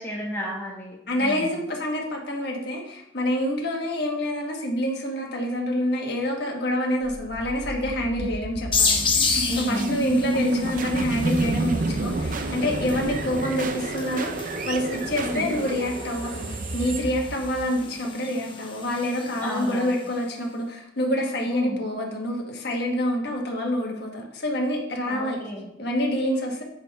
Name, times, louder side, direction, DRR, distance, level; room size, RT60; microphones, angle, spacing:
voice 1, 0.0-1.5 8.0-8.3 9.5-10.0 15.2-15.5 19.4-19.9 21.5-21.8 25.0-25.7, left 1 dB, 10° left, -4 dB, 1.5 m, -32 dB
voice 2, 1.1-25.4 25.8-26.6, left 1 dB, 65° left, 0 dB, 1.5 m, -27 dB
sound 1, 7.0-18.1, right 2 dB, 50° right, 0.6 m, -30 dB
sound 2, 8.7-20.1, left 5 dB, 30° left, 0.9 m, -31 dB
6.3 x 5.1 x 5.3 m, 0.83 s
head